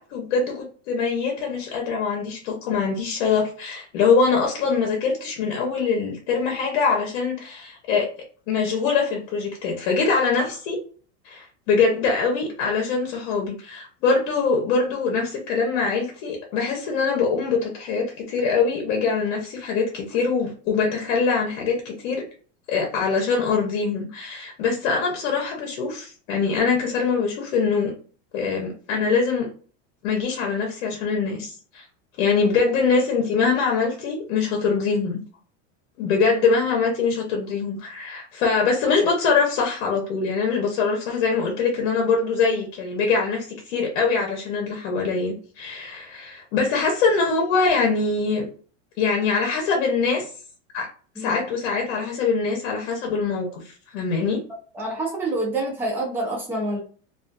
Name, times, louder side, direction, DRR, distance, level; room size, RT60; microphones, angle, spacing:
voice 1, 0.0-8.1 8.5-10.8 11.2-22.2 22.7-27.9 28.3-29.5 30.0-31.8 32.2-35.2 36.0-48.4 49.0-50.3 50.7-50.9 51.2-54.4, left 5 dB, 55° left, 0 dB, 0.9 m, -23 dB
voice 2, 54.7-56.8, right 2 dB, 5° right, -2 dB, 0.5 m, -27 dB
2.5 x 2.4 x 2.5 m, 0.41 s
supercardioid pair, 160°, 37 cm